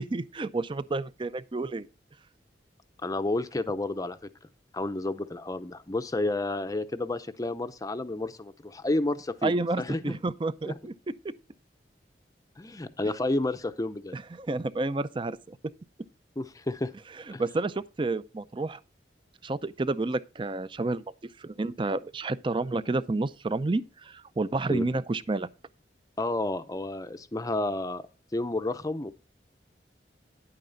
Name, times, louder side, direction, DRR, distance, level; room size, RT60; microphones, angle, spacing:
voice 1, 0.0-1.9 9.4-10.9 11.2-11.3 14.1-15.6 17.3-18.8 19.4-21.0 21.4-25.5, right 2 dB, 30° right, 0.5 m, -30 dB
voice 2, 3.0-4.2 4.7-10.2 10.7-10.8 12.6-14.2 16.4-16.9 17.3-17.4 24.7-24.9 26.2-28.0 28.3-29.1, left 2 dB, 20° left, 0.6 m, -30 dB
10.0 x 8.9 x 3.8 m
head